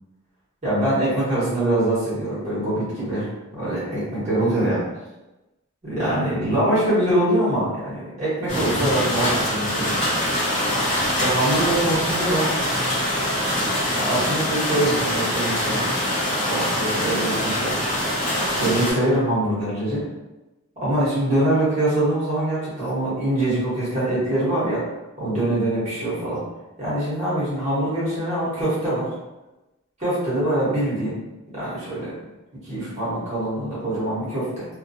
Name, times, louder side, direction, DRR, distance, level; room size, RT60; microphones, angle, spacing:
voice 1, 0.6-4.8 5.9-9.9 11.2-12.5 14.0-15.8 16.4-17.8 18.6-20.0 20.8-24.9 25.2-26.4 26.8-29.1 30.0-31.3 31.5-32.1 32.6-34.7, right 1 dB, 30° right, -10 dB, 1.1 m, -23 dB
sound 1, 8.5-18.9, equal, 30° left, 1.1 m, -24 dB
2.3 x 2.2 x 2.6 m, 1.0 s
head